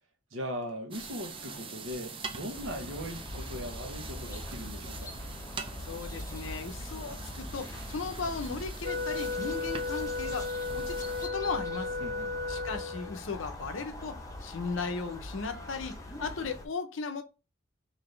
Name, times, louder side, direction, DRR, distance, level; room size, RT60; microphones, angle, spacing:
voice 1, 0.3-5.2 12.0-12.4, equal, 85° right, 1.1 m, -39 dB
sound 1, 0.9-11.3, right 4 dB, 25° right, 0.5 m, -44 dB
sound 2, 2.5-16.7, left 1 dB, 15° left, 0.7 m, -42 dB
voice 2, 5.8-11.9 12.5-17.2, left 4 dB, 85° left, 0.6 m, -37 dB
Wind instrument woodwind instrument, 8.8-13.2, left 3 dB, 50° right, 1.1 m, -34 dB
4.0 x 2.7 x 3.2 m
head